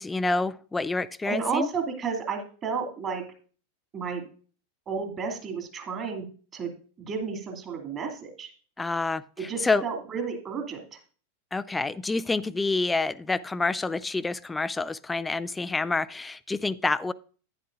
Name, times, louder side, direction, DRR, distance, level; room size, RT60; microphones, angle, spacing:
voice 1, 0.0-1.7 8.8-9.2 9.6-9.8 11.5-17.1, left 3 dB, 10° left, 17 dB, 0.3 m, -27 dB
voice 2, 1.2-3.2 3.9-4.3 4.9-6.3 6.5-6.7 7.0-8.5 9.4-11.0, right 5 dB, 30° right, 3 dB, 2.4 m, -32 dB
11.0 x 10.0 x 2.5 m, 0.40 s
figure-of-eight pair, 90°, 0 cm